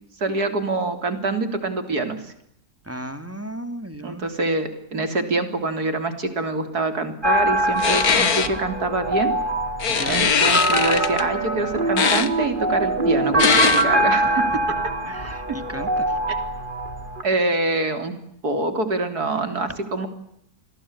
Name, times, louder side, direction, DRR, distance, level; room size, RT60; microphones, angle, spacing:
voice 1, 0.2-2.2 4.0-9.3 10.1-14.4 17.2-18.1 18.4-20.1, right 2 dB, 65° right, 9 dB, 4.0 m, -25 dB
voice 2, 2.8-4.3 9.9-10.3 13.5-13.9 14.2-14.7 15.1-16.2, right 1 dB, 10° right, 11 dB, 2.2 m, -35 dB
sound 1, 7.2-17.2, right 1 dB, 30° right, 3.2 m, -23 dB
sound 2, 7.8-8.5 9.8-11.2 12.0-12.3 13.4-13.8, left 6 dB, 60° left, 2.1 m, -20 dB
28.5 x 21.0 x 9.9 m, 0.74 s
omnidirectional pair, 1.8 m